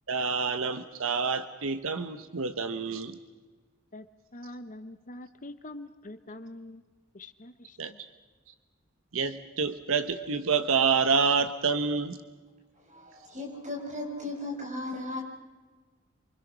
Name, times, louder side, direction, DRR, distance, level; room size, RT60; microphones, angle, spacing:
voice 1, 0.1-3.1 7.8-7.9 9.1-12.2, right 5 dB, 80° right, 9 dB, 1.1 m, -27 dB
voice 2, 4.3-6.8 7.1-8.0, left 1 dB, 40° left, 10 dB, 1.1 m, -44 dB
voice 3, 12.9-15.2, left 2 dB, 35° right, 0 dB, 6.7 m, -36 dB
28.5 x 24.5 x 6.2 m, 1.3 s
head